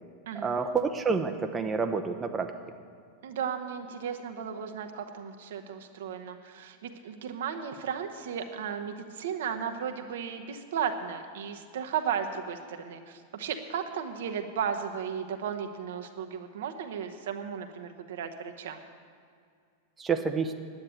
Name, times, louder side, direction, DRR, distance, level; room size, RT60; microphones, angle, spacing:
voice 1, 0.4-2.5 20.0-20.5, right 5 dB, 20° right, 6 dB, 0.7 m, -28 dB
voice 2, 3.2-18.8, right 7 dB, 60° right, 6 dB, 0.9 m, -35 dB
9.6 x 8.7 x 9.3 m, 2.2 s
figure-of-eight pair, 90°, 0 cm